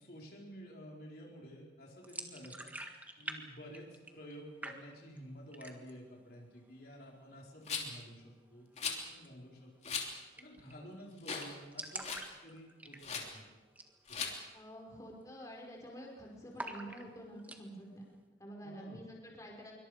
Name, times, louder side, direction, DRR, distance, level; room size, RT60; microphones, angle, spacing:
voice 1, 0.0-2.7 3.2-9.9 10.4-12.1 12.4-13.4 14.1-14.3 18.6-19.0, equal, 55° left, -2 dB, 4.6 m, -51 dB
sound 1, 2.0-3.4 3.6-4.4 4.6-5.2 5.5-6.0 6.4-6.5 6.8-7.5 9.1-9.3 9.6-9.7 9.9-10.0 10.4-10.7 11.0-11.1 11.3-13.3 13.7-14.0 14.3-14.4 14.9-15.2 15.5-16.1 16.6-17.6, right 2 dB, 10° right, 1.7 m, -46 dB
Rattle, 7.7-8.0 8.8-9.0 9.8-10.1 10.6-10.7 11.2-11.5 11.8-12.3 13.0-13.3 14.1-14.3, left 6 dB, 35° left, 3.2 m, -38 dB
voice 2, 14.5-18.0 18.4-19.7, equal, 20° left, -1 dB, 5.4 m, -48 dB
26.0 x 24.0 x 5.1 m, 1.2 s
head